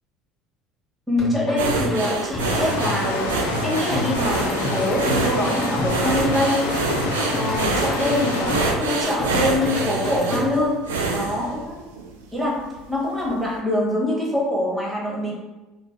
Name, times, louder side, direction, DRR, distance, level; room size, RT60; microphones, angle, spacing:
voice 1, 1.1-6.8 7.2-10.9 11.1-11.8 12.3-15.3, left 1 dB, 10° right, -4 dB, 1.1 m, -24 dB
sound 1, 1.2-10.7, left 1 dB, 40° left, 0.9 m, -29 dB
sound 2, 1.6-12.2 12.6-12.8 13.2-13.3, right 3 dB, 85° right, 0.3 m, -27 dB
sound 3, 2.4-8.7, left 3 dB, 85° left, 0.3 m, -28 dB
2.6 x 2.0 x 3.4 m, 1.1 s
hypercardioid pair, 70°, 0 cm